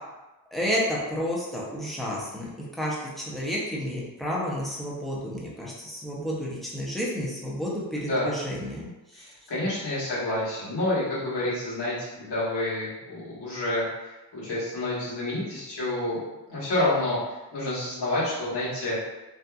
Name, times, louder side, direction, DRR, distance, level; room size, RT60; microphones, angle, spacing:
voice 1, 0.5-8.9 9.1-9.2, equal, ahead, -6 dB, 0.6 m, -31 dB
voice 2, 8.0-8.3 9.1-16.2 16.5-17.2 17.5-19.0, left 1 dB, 85° left, -9 dB, 1.3 m, -29 dB
2.7 x 2.5 x 2.3 m, 1.1 s
wide cardioid pair, 105°, 39 cm